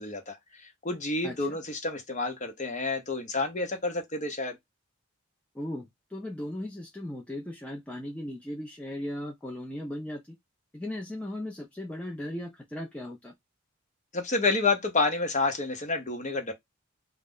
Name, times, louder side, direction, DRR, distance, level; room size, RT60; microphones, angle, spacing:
voice 1, 0.0-4.6 14.1-16.5, left 3 dB, 35° left, 0.7 m, -29 dB
voice 2, 1.2-1.6 5.5-10.4 10.7-13.3, left 1 dB, 5° left, 0.3 m, -37 dB
2.3 x 2.1 x 3.5 m
head